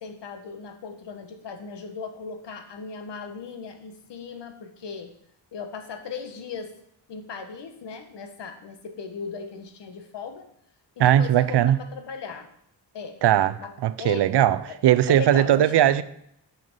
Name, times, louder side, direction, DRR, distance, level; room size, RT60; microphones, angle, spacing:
voice 1, 0.0-5.1 5.5-6.7 7.1-10.5 11.0-12.5 12.9-13.2 13.6-13.7 14.0-15.9, left 5 dB, 70° left, 1.3 m, -37 dB
voice 2, 11.0-11.8 13.2-13.5 13.8-14.6 14.8-16.0, right 11 dB, 65° right, 0.6 m, -19 dB
7.7 x 5.9 x 5.4 m
wide cardioid pair, 155°, 43 cm